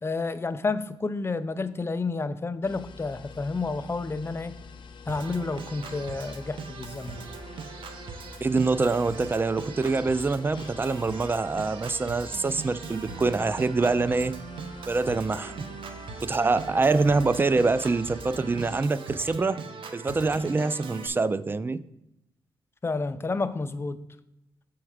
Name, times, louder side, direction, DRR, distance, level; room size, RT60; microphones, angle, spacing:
voice 1, 0.0-4.5 5.1-7.3 22.8-24.0, left 3 dB, 25° left, 11 dB, 0.5 m, -30 dB
sound 1, 2.6-18.8, left 5 dB, 65° left, 0.9 m, -47 dB
Organ, 5.1-21.1, right 5 dB, 70° right, 0.8 m, -41 dB
voice 2, 8.4-14.3 14.9-15.5 16.2-19.6 19.9-21.8, right 3 dB, 25° right, 17 dB, 0.4 m, -25 dB
7.2 x 4.6 x 4.9 m, 0.83 s
cardioid pair, 80°, 9 cm